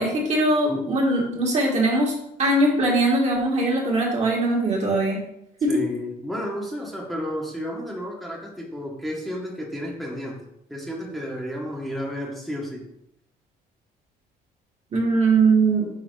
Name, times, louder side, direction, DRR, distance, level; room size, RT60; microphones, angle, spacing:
voice 1, 0.0-2.1 2.4-5.2 5.6-5.8 14.9-15.9, right 2 dB, 40° right, -2 dB, 2.1 m, -21 dB
voice 2, 5.7-10.4 10.7-12.8, equal, ahead, -3 dB, 1.4 m, -32 dB
6.3 x 4.2 x 3.9 m, 0.79 s
cardioid pair, 110°, 17 cm